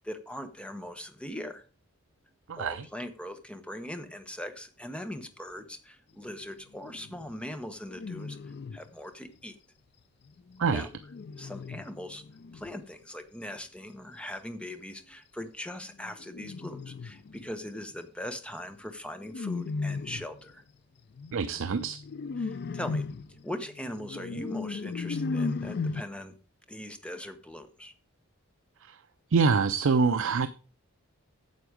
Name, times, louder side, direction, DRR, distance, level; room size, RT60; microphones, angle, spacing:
voice 1, 0.0-1.6 2.5-8.4 8.7-9.6 10.7-10.9 11.4-12.2 12.5-20.6 22.4-26.3 26.7-27.9, left 1 dB, 5° left, 1.0 m, -40 dB
voice 2, 2.5-2.8 10.6-10.9 21.3-22.0 28.9-29.0 29.3-30.5, right 5 dB, 60° right, 0.5 m, -25 dB
sound 1, 6.7-7.3 7.9-8.9 10.3-12.7 16.0-17.5 19.2-20.4 21.2-26.0, left 4 dB, 50° left, 0.4 m, -36 dB
9.4 x 7.0 x 5.1 m
head